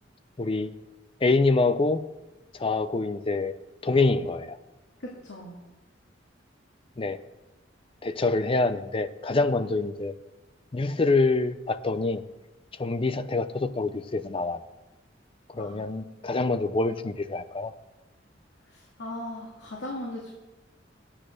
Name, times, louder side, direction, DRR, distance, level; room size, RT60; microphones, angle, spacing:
voice 1, 0.4-0.7 1.2-2.0 2.5-3.5 3.8-4.6 7.0-7.2 8.0-10.1 10.7-12.2 12.8-14.6 15.5-17.7, left 3 dB, 30° left, 12 dB, 0.5 m, -25 dB
voice 2, 5.0-5.6 15.6-15.8 18.7-20.3, left 1 dB, 75° left, -3 dB, 2.0 m, -38 dB
10.5 x 8.8 x 6.4 m, 1.0 s
head